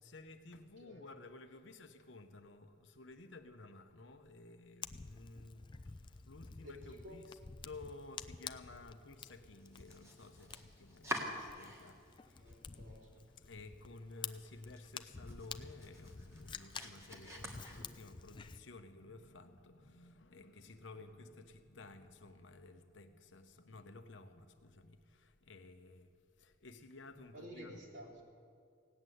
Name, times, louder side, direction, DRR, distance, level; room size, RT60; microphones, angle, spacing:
voice 1, 0.0-12.5 13.3-26.1 26.4-27.9, left 2 dB, 70° left, 0.9 m, -54 dB
Fire, 4.8-18.6, left 6 dB, 25° left, 0.4 m, -51 dB
voice 2, 6.6-7.2 12.3-13.1 27.3-28.2, equal, 60° right, 3.9 m, -52 dB
Domestic sounds home sounds, 9.6-12.1 12.5-13.2 13.6-13.7 14.1-14.2 14.6-18.3, equal, 15° right, 1.6 m, -47 dB
17.0 x 8.2 x 9.3 m
head